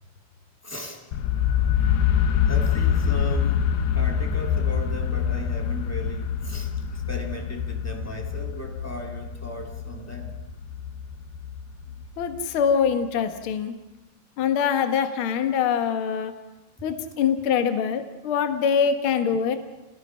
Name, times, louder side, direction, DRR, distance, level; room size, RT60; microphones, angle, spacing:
voice 1, 0.6-1.0 2.5-3.7 3.9-10.4 16.8-16.9, left 1 dB, 5° left, 1 dB, 1.5 m, -37 dB
sound 1, 1.1-12.9, left 8 dB, 80° left, 3.2 m, -25 dB
voice 2, 12.2-13.7 14.4-16.3 16.8-19.5, left 7 dB, 65° left, 6 dB, 1.3 m, -24 dB
29.0 x 19.5 x 5.8 m, 1.1 s
omnidirectional pair, 4.9 m